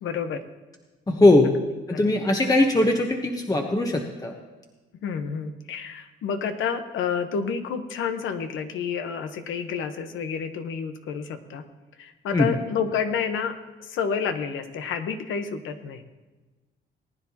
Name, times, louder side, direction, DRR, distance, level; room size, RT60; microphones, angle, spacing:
voice 1, 0.0-0.4 1.9-2.1 5.0-11.6 12.0-16.0, left 6 dB, 80° left, 8 dB, 1.1 m, -29 dB
voice 2, 1.1-1.5 1.9-4.3 12.3-12.5, left 2 dB, 20° left, 3 dB, 1.1 m, -20 dB
19.0 x 10.0 x 2.9 m, 1.2 s
cardioid pair, 90°, 20 cm